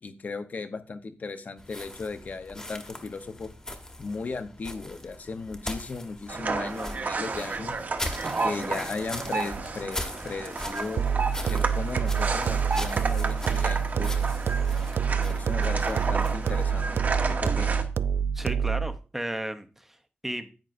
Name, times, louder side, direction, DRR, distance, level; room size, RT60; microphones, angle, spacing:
voice 1, 0.0-3.5 4.0-7.7 8.4-11.1 11.5-14.2 15.0-16.9 17.3-17.7, left 4 dB, 45° left, 0.8 m, -36 dB
sound 1, 1.6-17.1, left 1 dB, 15° left, 1.2 m, -41 dB
sound 2, 6.3-17.8, right 4 dB, 45° right, 1.0 m, -32 dB
sound 3, 11.0-19.0, right 7 dB, 70° right, 0.3 m, -27 dB
voice 2, 18.3-20.0 20.2-20.5, right 1 dB, 5° right, 0.7 m, -34 dB
10.5 x 8.9 x 2.6 m
wide cardioid pair, 170°, 4 cm